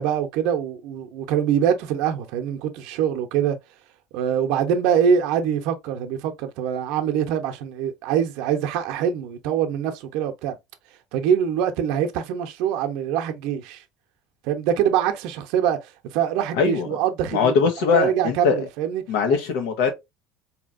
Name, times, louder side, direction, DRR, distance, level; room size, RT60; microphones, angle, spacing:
voice 1, 0.0-3.6 4.1-10.6 11.1-13.8 14.4-17.5 17.9-19.0, right 8 dB, 60° right, 0.7 m, -24 dB
voice 2, 16.6-16.9 17.3-18.7 19.1-19.9, left 5 dB, 80° left, 1.2 m, -21 dB
4.3 x 2.8 x 2.5 m
cardioid pair, 155°, 0 cm